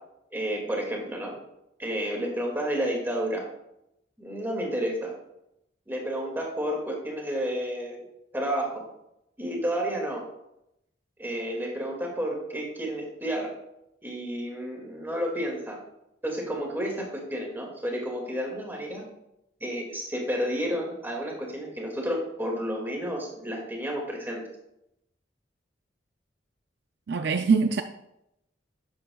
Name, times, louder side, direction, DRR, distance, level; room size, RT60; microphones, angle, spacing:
voice 1, 0.3-1.3 1.8-3.4 4.2-5.1 5.9-8.0 8.3-8.8 9.4-10.2 11.2-13.5 14.0-15.8 16.2-19.1 19.6-24.4, equal, 10° right, 2.1 m, -31 dB
voice 2, 27.1-27.8, right 5 dB, 60° right, 0.4 m, -23 dB
11.0 x 8.7 x 2.3 m
head